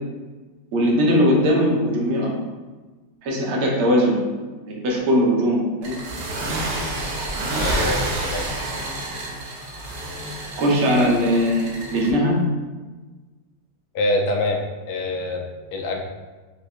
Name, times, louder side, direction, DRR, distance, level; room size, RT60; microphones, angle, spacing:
voice 1, 0.7-2.3 3.2-4.3 4.7-6.0 9.5-9.6 10.6-12.4, equal, 80° right, -3 dB, 1.8 m, -20 dB
sound 1, 5.8-12.1, right 1 dB, 60° right, 1.1 m, -28 dB
voice 2, 7.5-8.5 13.9-14.6 14.9-16.0, left 1 dB, 85° left, 1 dB, 1.5 m, -25 dB
5.2 x 2.1 x 4.4 m, 1.3 s
omnidirectional pair, 2.3 m